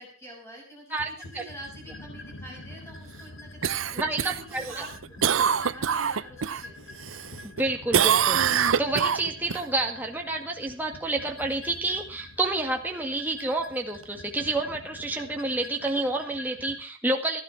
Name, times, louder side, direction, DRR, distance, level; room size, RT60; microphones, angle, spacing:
voice 1, 0.0-7.1, right 1 dB, 15° left, 0 dB, 6.2 m, -47 dB
sound 1, 1.0-16.8, left 2 dB, 70° left, 1.5 m, -45 dB
Cough, 3.6-6.6 7.0-7.6 7.9-9.6 14.0-14.1, right 8 dB, 85° right, 0.6 m, -24 dB
voice 2, 3.9-4.8 7.4-17.4, right 2 dB, 10° right, 1 dB, 2.0 m, -29 dB
15.5 x 11.0 x 5.9 m, 0.40 s
head